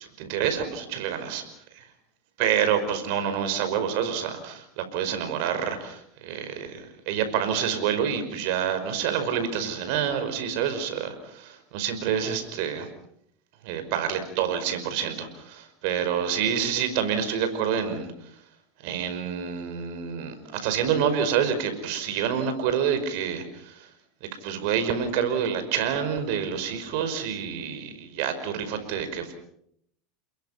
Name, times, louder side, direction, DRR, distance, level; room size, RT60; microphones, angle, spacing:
voice 1, 0.0-1.4 1.7-1.9 2.4-12.9 13.6-18.1 18.8-23.9 24.4-29.3, right 8 dB, 65° right, 9 dB, 5.4 m, -27 dB
29.5 x 22.0 x 5.8 m, 0.71 s
supercardioid pair, 125°, 0 cm